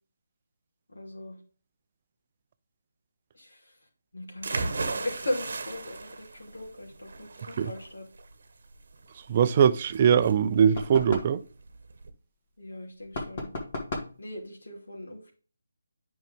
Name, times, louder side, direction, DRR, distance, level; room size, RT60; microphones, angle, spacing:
voice 1, 0.9-1.4 3.3-3.7 4.1-8.1 12.6-13.5 14.2-15.3, left 1 dB, 75° left, 2.9 m, -38 dB
sound 1, 4.4-12.1, right 3 dB, 60° right, 1.0 m, -37 dB
voice 2, 9.3-11.4, right 8 dB, 35° right, 0.5 m, -21 dB
sound 2, 10.7-11.4 13.1-14.2, left 2 dB, 40° left, 2.0 m, -35 dB
9.0 x 5.5 x 3.6 m
figure-of-eight pair, 155°, 0 cm